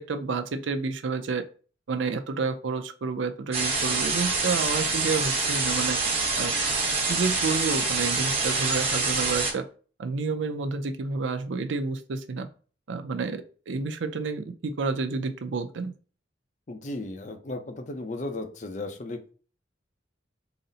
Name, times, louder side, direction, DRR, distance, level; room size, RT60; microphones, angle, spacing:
voice 1, 0.0-1.4 1.9-6.0 6.4-6.5 7.1-9.6 10.0-12.5 12.9-15.9, right 4 dB, 85° right, 8 dB, 0.5 m, -30 dB
sound 1, 3.5-9.5, right 3 dB, 30° right, 1.2 m, -26 dB
voice 2, 16.7-19.3, left 2 dB, 40° left, 6 dB, 0.6 m, -35 dB
4.0 x 2.1 x 3.9 m, 0.39 s
head